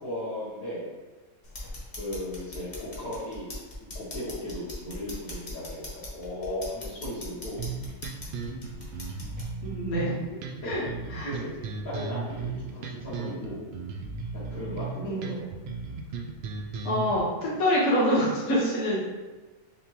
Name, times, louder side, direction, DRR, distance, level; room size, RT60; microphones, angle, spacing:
voice 1, 0.0-0.9 2.0-3.5 3.9-7.7 10.6-10.7 11.2-13.6 14.3-15.5, left 1 dB, 85° left, -13 dB, 1.8 m, -36 dB
sound 1, 1.4-9.5, left 1 dB, 35° left, 1.1 m, -41 dB
sound 2, 7.6-17.2, right 4 dB, 90° right, 0.4 m, -36 dB
voice 2, 9.6-10.1 10.6-10.8 11.1-11.3 15.0-15.4 16.8-19.0, equal, 55° left, -7 dB, 1.5 m, -26 dB
6.7 x 2.2 x 2.9 m, 1.2 s
omnidirectional pair, 1.5 m